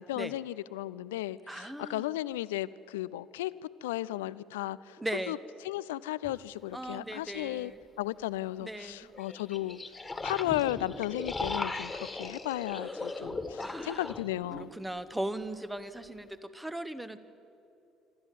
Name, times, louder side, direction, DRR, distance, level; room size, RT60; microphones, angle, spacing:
voice 1, 0.0-3.5 3.8-5.0 5.3-5.4 5.7-7.7 8.0-9.8 10.2-14.7, left 15 dB, 75° left, 18 dB, 0.4 m, -35 dB
voice 2, 1.5-2.1 5.0-5.4 6.7-7.8 8.6-9.1 12.7-14.2 14.6-17.2, right 1 dB, 10° right, 12 dB, 1.3 m, -39 dB
sound 1, 6.2-6.3 9.1-14.7, left 3 dB, 20° left, 1.9 m, -38 dB
25.5 x 13.5 x 9.2 m, 2.8 s
figure-of-eight pair, 55°, 0 cm